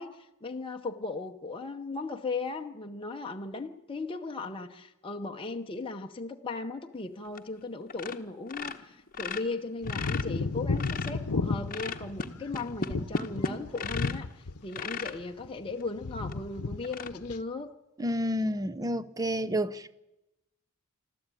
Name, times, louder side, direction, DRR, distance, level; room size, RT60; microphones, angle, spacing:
voice 1, 0.0-14.3 14.6-17.7, left 3 dB, 25° left, 0.9 m, -37 dB
sound 1, 7.3-7.6 7.9-8.2 8.5-11.3 11.7-14.3 14.7-15.2 15.8-15.9 16.3-16.4 16.8-17.1, left 4 dB, 40° left, 1.1 m, -36 dB
sound 2, 9.8-14.8 15.1-15.7 16.0-16.8 17.1-17.4, left 3 dB, 80° left, 0.8 m, -33 dB
voice 2, 18.0-19.9, equal, 15° right, 0.6 m, -30 dB
26.5 x 13.0 x 9.0 m
head